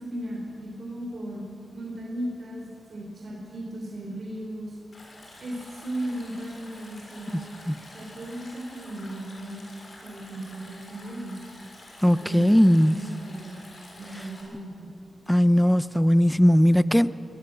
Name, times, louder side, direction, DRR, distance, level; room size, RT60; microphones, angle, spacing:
voice 1, 0.0-1.4 1.7-4.8 5.4-7.5 7.9-9.6 10.0-11.4 12.0-13.7 14.0-14.9, right 1 dB, 60° right, 4.3 m, -36 dB
Stream, 4.9-14.4, left 2 dB, 50° left, 6.7 m, -48 dB
voice 2, 12.0-13.0 15.3-17.1, equal, 5° left, 0.6 m, -19 dB
21.5 x 19.5 x 7.9 m
wide cardioid pair, 95°, 0 cm